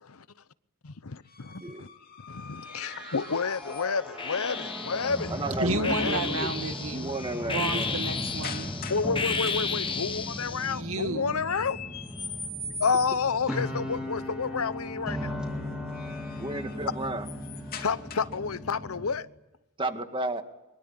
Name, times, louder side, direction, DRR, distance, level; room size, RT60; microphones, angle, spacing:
voice 1, 0.8-1.9 2.3-5.3 5.7-6.4 8.9-11.8 12.8-15.4 17.8-19.3, left 5 dB, 80° left, 0.9 m, -30 dB
sound 1, 1.3-4.2 6.0-6.3 6.7-9.1 9.4-10.0 11.5-13.4 15.7-18.5, left 3 dB, 45° left, 2.8 m, -43 dB
voice 2, 1.6-1.9 5.3-6.5 6.9-8.0 16.4-17.3 19.8-20.4, right 2 dB, 25° right, 2.1 m, -33 dB
sound 2, 2.7-19.1, left 1 dB, 5° right, 4.1 m, -37 dB
sound 3, 2.8-3.5 4.2-10.8, left 5 dB, 25° left, 1.3 m, -34 dB
voice 3, 5.6-7.1 7.5-8.7 10.7-11.4, right 2 dB, 80° right, 2.2 m, -31 dB
24.5 x 23.0 x 8.9 m
head